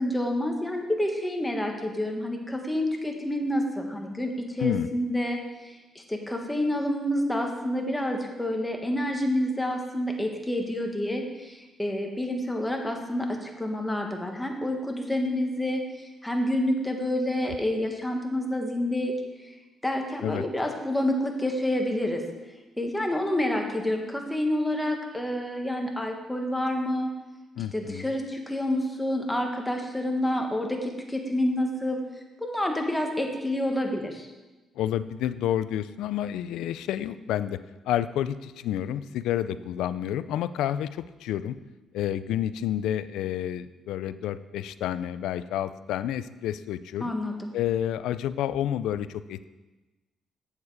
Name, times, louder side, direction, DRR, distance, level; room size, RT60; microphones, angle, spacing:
voice 1, 0.0-19.1 19.8-22.2 22.8-27.1 27.7-32.0 32.4-34.3 47.0-47.5, left 1 dB, 10° left, 2 dB, 1.5 m, -28 dB
voice 2, 27.6-28.1 34.8-37.6 37.9-41.6 41.9-47.1 47.5-49.5, left 11 dB, 85° left, 14 dB, 0.3 m, -29 dB
8.2 x 7.2 x 4.8 m, 1.1 s
cardioid pair, 90°, 0 cm